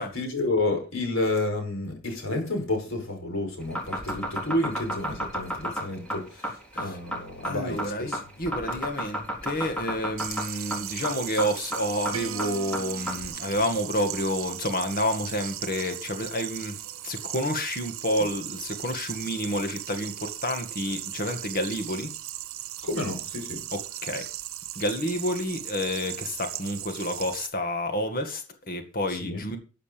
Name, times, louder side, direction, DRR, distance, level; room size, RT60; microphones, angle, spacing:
voice 1, 0.1-8.2 22.8-23.6 29.2-29.4, left 2 dB, 75° left, 5.1 m, -30 dB
sound 1, 3.6-13.3, right 1 dB, 5° left, 3.6 m, -31 dB
voice 2, 7.4-22.1 24.0-24.3 24.8-29.6, left 1 dB, 45° left, 2.0 m, -29 dB
sound 2, 10.2-27.5, right 13 dB, 85° right, 0.9 m, -37 dB
sound 3, 12.1-14.5, right 6 dB, 70° right, 1.1 m, -42 dB
13.5 x 8.2 x 5.2 m
head